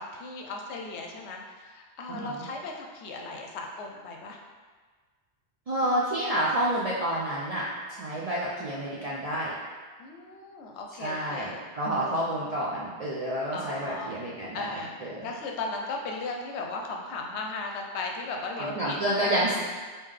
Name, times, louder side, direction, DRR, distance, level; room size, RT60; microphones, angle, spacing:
voice 1, 0.0-1.4 1.7-4.4 10.0-11.5 12.0-12.2 13.5-14.1 14.5-19.4, left 3 dB, 80° left, 1 dB, 0.8 m, -36 dB
voice 2, 2.1-2.5 5.7-7.6 7.9-9.5 11.0-15.3 18.6-19.6, right 1 dB, 60° right, -6 dB, 0.4 m, -29 dB
3.6 x 2.7 x 3.2 m, 1.5 s
omnidirectional pair, 1.1 m